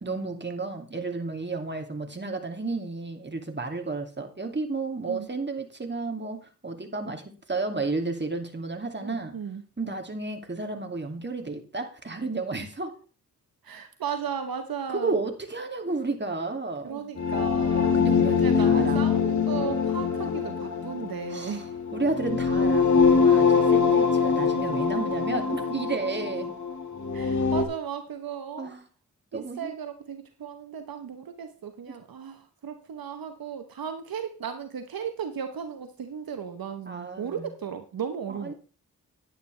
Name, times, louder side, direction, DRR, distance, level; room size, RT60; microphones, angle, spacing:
voice 1, 0.0-9.3 9.8-12.9 14.9-17.0 17.9-19.0 21.3-21.6 21.9-26.5 28.6-28.8 29.3-29.7 31.9-32.0 36.9-37.5 38.3-38.5, right 3 dB, 30° right, 4 dB, 2.5 m, -32 dB
voice 2, 9.0-9.6 13.6-15.2 16.8-18.0 18.4-21.8 27.1-28.7 29.3-38.5, right 7 dB, 75° right, 7 dB, 1.1 m, -35 dB
sound 1, 17.2-27.6, left 6 dB, 50° left, 2.0 m, -23 dB
10.5 x 10.0 x 3.3 m, 0.36 s
cardioid pair, 45°, 36 cm